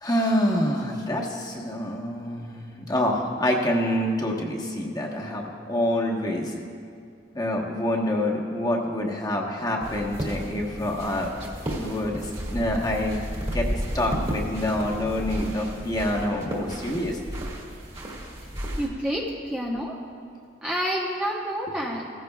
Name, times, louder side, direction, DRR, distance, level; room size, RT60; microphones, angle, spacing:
voice 1, 0.0-6.5 7.3-11.3 11.7-13.2 13.5-17.3, left 1 dB, 20° left, -1 dB, 1.2 m, -27 dB
sound 1, 9.8-18.9, equal, 30° right, 1.9 m, -33 dB
voice 2, 18.8-20.0 20.6-22.1, equal, 5° right, -3 dB, 0.8 m, -28 dB
17.5 x 14.5 x 2.3 m, 2.2 s
head